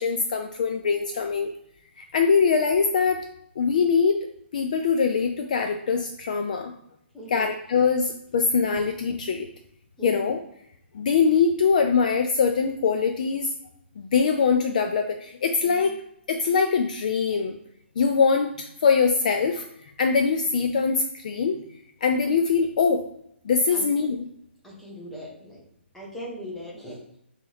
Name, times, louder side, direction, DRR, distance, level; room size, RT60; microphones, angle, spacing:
voice 1, 0.0-1.5 2.0-3.3 3.6-4.3 4.5-6.7 7.3-9.5 10.0-10.4 10.9-13.5 14.0-15.9 16.3-17.6 18.0-19.6 20.0-21.6 22.0-23.1 23.4-24.3, left 5 dB, 40° left, 5 dB, 0.3 m, -23 dB
voice 2, 7.1-7.5 10.0-10.2 15.6-15.9 23.7-23.8 24.6-25.6 25.9-27.0, equal, 5° left, -5 dB, 0.8 m, -39 dB
3.0 x 2.9 x 3.9 m, 0.73 s
hypercardioid pair, 170°, 7 cm